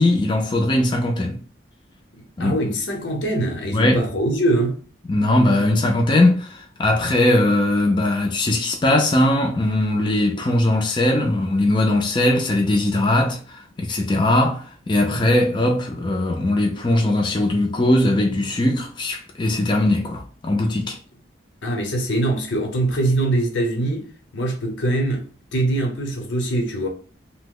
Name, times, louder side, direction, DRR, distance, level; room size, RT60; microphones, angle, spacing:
voice 1, 0.0-1.4 2.4-2.6 3.7-4.1 5.1-21.0, left 1 dB, 25° left, 0.4 m, -20 dB
voice 2, 2.4-4.8 21.6-24.1 24.3-25.2 25.5-26.9, right 1 dB, 85° left, 0.8 m, -22 dB
2.8 x 2.1 x 3.7 m
head